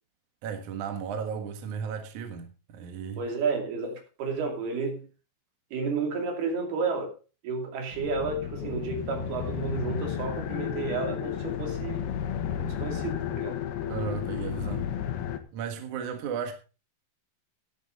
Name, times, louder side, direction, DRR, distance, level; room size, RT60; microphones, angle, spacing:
voice 1, 0.4-3.2 13.9-14.9 15.5-16.5, right 7 dB, 60° right, 2.8 m, -34 dB
voice 2, 3.2-5.0 5.7-7.1 7.4-12.1 12.6-13.6, right 4 dB, 85° right, 4.6 m, -31 dB
sound 1, 7.9-15.4, left 10 dB, 85° left, 3.1 m, -33 dB
12.5 x 11.0 x 3.9 m
omnidirectional pair, 4.4 m